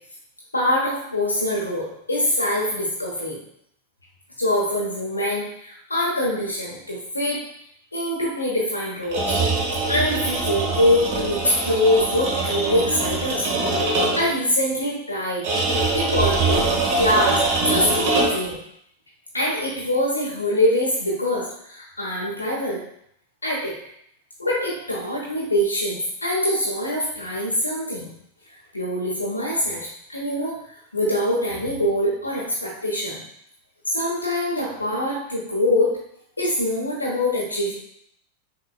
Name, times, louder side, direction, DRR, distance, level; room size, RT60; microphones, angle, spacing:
voice 1, 0.5-3.4 4.4-7.4 7.9-9.4 9.9-13.5 14.2-15.5 15.9-16.7 17.0-18.6 19.3-22.8 23.4-23.7 24.4-28.1 28.7-30.6 30.9-33.2 33.9-35.9 36.4-37.7, left 1 dB, 80° left, -5 dB, 1.0 m, -24 dB
sound 1, 9.0-14.4 15.4-18.5, right 3 dB, 40° right, 1.3 m, -23 dB
6.2 x 2.9 x 2.3 m, 0.71 s
figure-of-eight pair, 90°, 0 cm